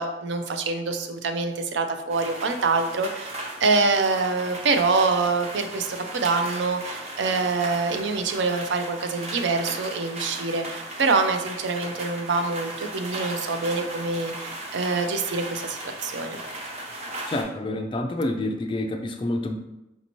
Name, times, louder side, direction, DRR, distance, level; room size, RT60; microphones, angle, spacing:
voice 1, 0.0-16.4, right 3 dB, 75° right, 7 dB, 0.4 m, -25 dB
sound 1, 2.1-17.4, right 1 dB, 35° right, 0.7 m, -37 dB
voice 2, 17.3-19.6, left 1 dB, 25° left, 5 dB, 0.3 m, -28 dB
5.2 x 2.7 x 2.9 m, 0.94 s
head